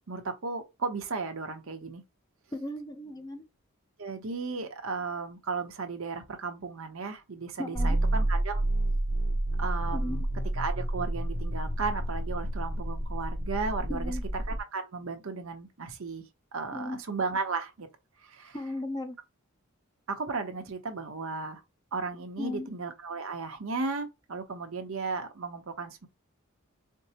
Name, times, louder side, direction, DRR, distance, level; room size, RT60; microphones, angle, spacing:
voice 1, 0.0-2.0 4.0-8.6 9.6-10.2 10.5-14.1 14.5-16.2 16.5-17.9 18.2-18.6 20.1-21.6 21.9-26.1, right 4 dB, 70° right, 0.8 m, -35 dB
voice 2, 2.5-3.4 7.6-8.0 9.9-10.2 13.9-14.2 16.7-17.0 18.5-19.2 22.4-22.7, left 1 dB, 20° left, 0.4 m, -36 dB
sound 1, 7.7-14.6, right 1 dB, 35° right, 0.6 m, -29 dB
4.4 x 2.0 x 2.8 m
head